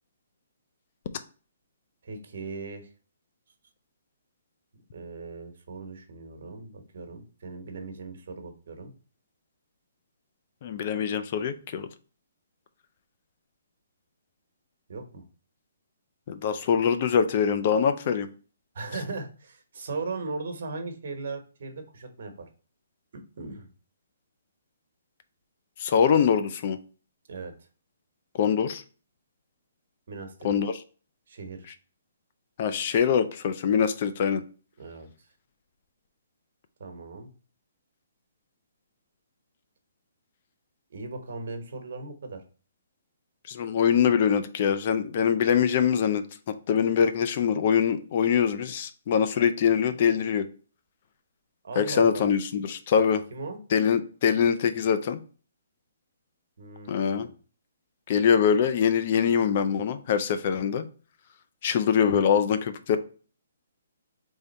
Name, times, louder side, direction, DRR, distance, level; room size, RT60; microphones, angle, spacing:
voice 1, 2.0-2.9 4.9-8.9 14.9-15.2 18.7-22.5 23.4-23.7 27.3-27.5 30.1-30.5 31.3-31.7 34.8-35.1 36.8-37.3 40.9-42.4 51.6-52.2 53.3-53.6 56.6-57.3, right 3 dB, 60° right, 6 dB, 1.2 m, -38 dB
voice 2, 10.6-11.9 16.3-18.3 25.8-26.8 28.4-28.8 30.4-30.8 32.6-34.4 43.5-50.5 51.8-53.2 53.7-55.2 56.9-57.3 58.1-60.8 61.6-63.0, left 7 dB, 45° left, 10 dB, 0.5 m, -23 dB
3.6 x 3.3 x 4.1 m, 0.38 s
hypercardioid pair, 150°, 0 cm